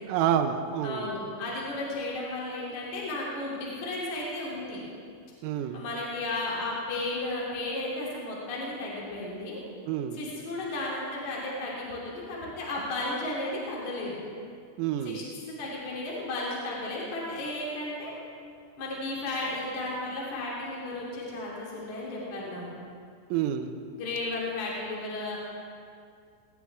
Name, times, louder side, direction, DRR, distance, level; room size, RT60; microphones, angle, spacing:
voice 1, 0.1-1.1 5.4-5.8 9.9-10.2 14.8-15.2 23.3-23.7, right 9 dB, 85° right, 7 dB, 3.4 m, -28 dB
voice 2, 0.8-4.8 5.7-9.6 10.1-14.2 15.0-15.2 15.6-18.1 18.8-22.6 23.9-25.4, left 2 dB, 40° left, -5 dB, 3.9 m, -34 dB
20.0 x 19.0 x 3.6 m, 2.2 s
omnidirectional pair, 5.9 m